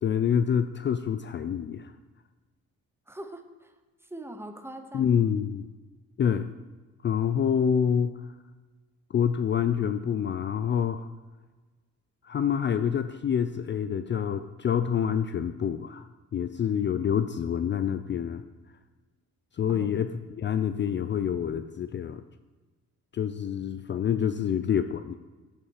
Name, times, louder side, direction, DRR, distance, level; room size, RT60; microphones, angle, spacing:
voice 1, 0.0-1.9 4.9-5.7 6.2-6.5 7.0-8.2 9.1-11.1 12.2-18.4 19.5-22.2 23.1-25.1, left 8 dB, 40° left, 11 dB, 0.4 m, -27 dB
voice 2, 3.1-3.7 4.0-5.3 19.7-20.0, right 1 dB, 10° right, 6 dB, 1.0 m, -42 dB
8.6 x 8.2 x 4.7 m, 1.3 s
cardioid pair, 90°, 30 cm